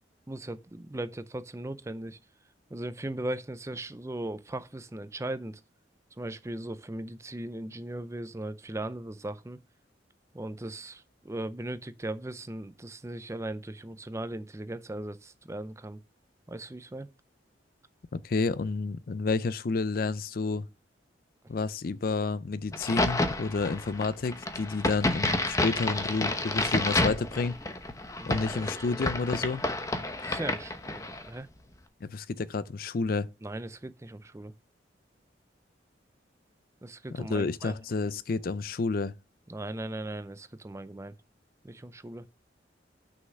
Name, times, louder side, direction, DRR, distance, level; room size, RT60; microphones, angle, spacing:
voice 1, 0.3-2.2 2.7-5.6 6.2-9.6 10.3-16.0 16.5-17.1 28.2-28.9 30.2-31.5 33.4-34.5 36.8-37.8 39.5-41.1 41.6-42.2, right 1 dB, 15° right, 0.5 m, -38 dB
voice 2, 18.1-20.7 21.5-27.5 28.3-29.6 32.0-33.3 37.2-39.1, left 4 dB, 50° left, 0.4 m, -30 dB
Crack, 22.7-31.3, left 2 dB, 20° left, 0.9 m, -30 dB
6.5 x 5.6 x 6.4 m
head